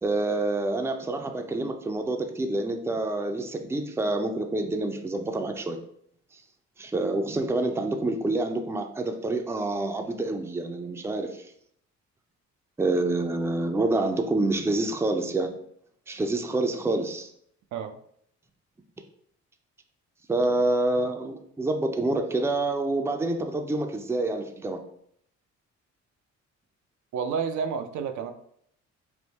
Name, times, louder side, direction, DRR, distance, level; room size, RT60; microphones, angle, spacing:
voice 1, 0.0-5.8 6.8-11.5 12.8-15.5 16.1-17.3 20.3-24.8, right 2 dB, 10° right, 5 dB, 0.4 m, -27 dB
voice 2, 27.1-28.3, right 6 dB, 75° right, 7 dB, 0.5 m, -30 dB
3.6 x 2.6 x 4.0 m, 0.68 s
cardioid pair, 90°, 30 cm